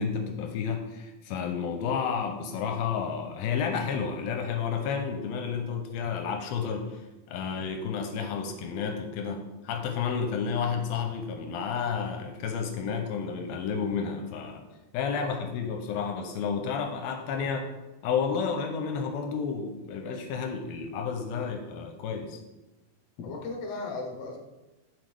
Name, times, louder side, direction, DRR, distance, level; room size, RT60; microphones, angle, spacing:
voice 1, 0.0-14.7 14.9-17.7 18.0-22.4, left 6 dB, 85° left, 4 dB, 2.4 m, -31 dB
voice 2, 23.2-24.4, left 3 dB, 65° left, 1 dB, 1.7 m, -36 dB
8.1 x 6.3 x 3.4 m, 1.1 s
omnidirectional pair, 4.4 m